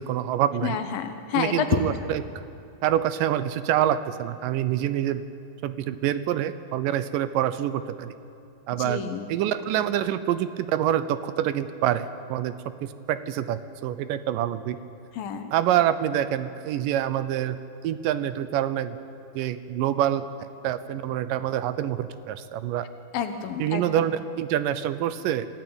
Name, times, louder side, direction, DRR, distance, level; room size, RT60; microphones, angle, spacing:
voice 1, 0.0-0.8 1.3-2.2 2.8-5.2 5.6-8.1 8.7-9.0 9.3-12.5 12.8-14.8 15.5-17.6 17.8-19.0 19.3-20.3 20.6-22.9 23.6-25.5, right 11 dB, 75° right, 13 dB, 2.1 m, -26 dB
voice 2, 0.6-1.8 8.8-9.3 15.1-15.5 23.1-23.9, left 8 dB, 75° left, 8 dB, 2.8 m, -28 dB
26.5 x 15.5 x 8.8 m, 2.7 s
omnidirectional pair, 4.3 m